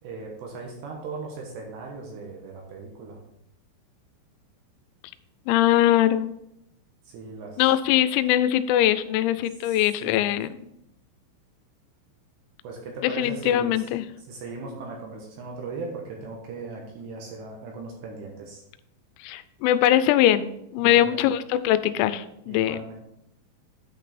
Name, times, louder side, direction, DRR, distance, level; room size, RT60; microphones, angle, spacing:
voice 1, 0.0-3.2 7.1-7.6 9.6-10.4 12.6-13.7 14.3-18.6 20.8-21.3 22.5-23.0, right 3 dB, 70° right, 0 dB, 2.8 m, -38 dB
voice 2, 5.5-6.3 7.6-10.5 13.0-14.1 19.2-22.8, left 12 dB, 90° left, 13 dB, 3.3 m, -22 dB
9.2 x 5.4 x 4.1 m, 0.79 s
omnidirectional pair, 6.0 m